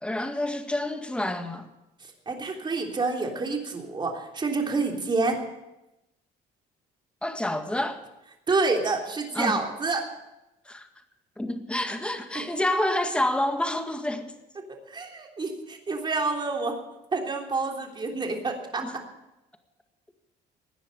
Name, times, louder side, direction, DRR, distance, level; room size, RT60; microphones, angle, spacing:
voice 1, 0.0-1.7 7.2-8.0 9.3-9.6 10.7-10.9 11.4-14.4 18.8-18.9, left 1 dB, 5° left, 6 dB, 1.9 m, -28 dB
voice 2, 2.3-5.4 8.5-10.0 14.9-16.7 17.1-18.8, right 3 dB, 25° right, 1 dB, 3.4 m, -28 dB
17.5 x 10.0 x 8.2 m, 0.94 s
cardioid pair, 110°, 17 cm